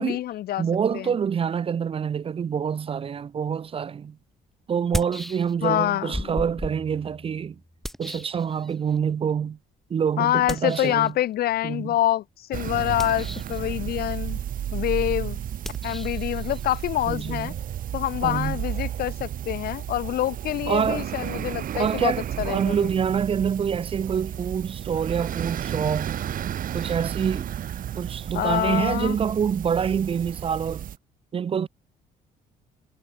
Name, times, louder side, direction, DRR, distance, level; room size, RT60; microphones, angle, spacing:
voice 1, 0.0-0.6 0.9-1.1 5.6-6.4 10.2-14.4 14.7-15.4 15.8-17.5 17.9-22.8 28.3-29.2, left 13 dB, 65° left, 1.8 m, -26 dB
voice 2, 0.6-4.2 4.7-7.6 8.0-9.6 9.9-11.1 11.6-11.9 17.1-17.5 18.2-18.6 20.7-21.0 21.7-26.2 26.7-27.5 28.0-30.9 31.3-31.7, right 7 dB, 35° right, 0.7 m, -26 dB
sound 1, 3.8-3.9 4.7-5.8 6.1-9.0 10.5-11.1 12.9-13.6 15.6-18.2, equal, ahead, 6.2 m, -36 dB
sound 2, 12.5-31.0, right 10 dB, 55° right, 2.4 m, -32 dB
cardioid pair, 110°, 17 cm